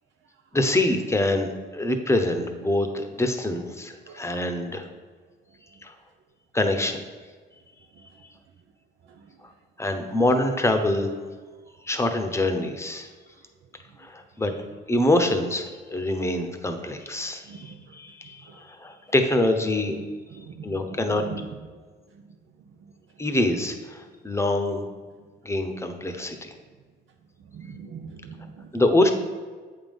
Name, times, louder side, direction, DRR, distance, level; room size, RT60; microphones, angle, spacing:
voice 1, 0.5-4.9 5.8-5.9 6.5-7.0 9.8-11.1 11.8-13.1 14.0-14.5 14.9-19.9 20.6-21.2 23.2-24.8 25.4-26.5 28.7-29.1, left 1 dB, 15° left, 6 dB, 0.8 m, -25 dB
voice 2, 17.5-17.8 18.5-18.6 20.3-20.7 21.1-21.5 27.5-28.7, right 5 dB, 75° right, 3 dB, 0.6 m, -40 dB
8.2 x 3.8 x 5.3 m, 1.5 s
cardioid pair, 90°, 20 cm